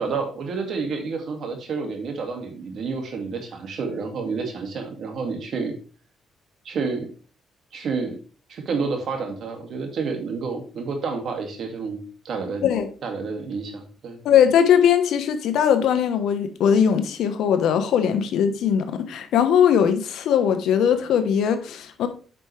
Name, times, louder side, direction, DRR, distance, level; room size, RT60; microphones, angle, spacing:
voice 1, 0.0-5.8 6.6-7.1 7.7-8.2 8.5-12.6 13.0-14.2, right 4 dB, 65° right, 2.2 m, -29 dB
voice 2, 14.2-22.1, left 8 dB, 80° left, 1.1 m, -20 dB
8.9 x 6.0 x 3.3 m
cardioid pair, 90°, 0 cm